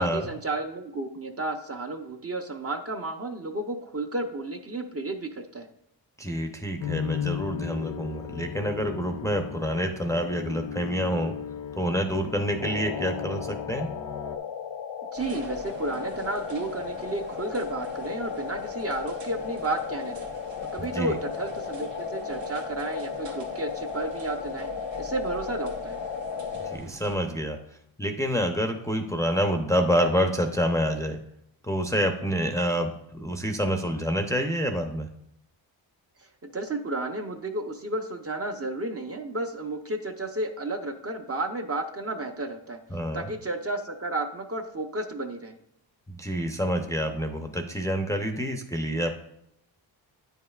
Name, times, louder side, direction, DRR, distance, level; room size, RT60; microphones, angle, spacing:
voice 1, 0.0-5.7 15.1-20.3 20.7-24.7 25.0-26.0 36.4-42.8 43.1-45.5, right 2 dB, 30° right, 5 dB, 0.6 m, -32 dB
voice 2, 6.2-11.3 11.8-13.9 20.8-21.2 26.6-27.6 28.0-31.2 31.6-35.1 42.9-43.2 46.1-49.1, equal, 5° left, 3 dB, 0.5 m, -27 dB
sound 1, 6.8-14.4, left 8 dB, 55° left, 0.6 m, -36 dB
sound 2, 12.6-26.8, left 6 dB, 80° left, 0.8 m, -35 dB
sound 3, 15.1-27.2, right 3 dB, 70° right, 1.2 m, -46 dB
9.2 x 5.5 x 2.3 m, 0.76 s
cardioid pair, 95°, 46 cm